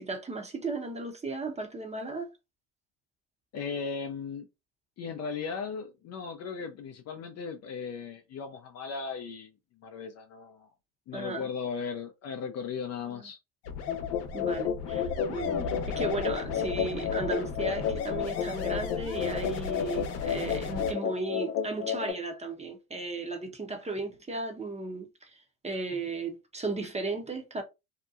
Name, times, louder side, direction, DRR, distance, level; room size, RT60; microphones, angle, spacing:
voice 1, 0.0-2.3 11.1-11.5 14.3-25.3 25.6-27.6, right 3 dB, 15° right, 0.7 m, -35 dB
voice 2, 3.5-4.5 5.0-9.5 9.8-10.7 11.1-13.4, left 5 dB, 35° left, 0.4 m, -37 dB
sound 1, 13.6-20.9, left 5 dB, 60° left, 0.8 m, -37 dB
sound 2, 13.9-22.1, left 8 dB, 80° left, 0.6 m, -32 dB
2.8 x 2.1 x 2.4 m
supercardioid pair, 90°, 45 cm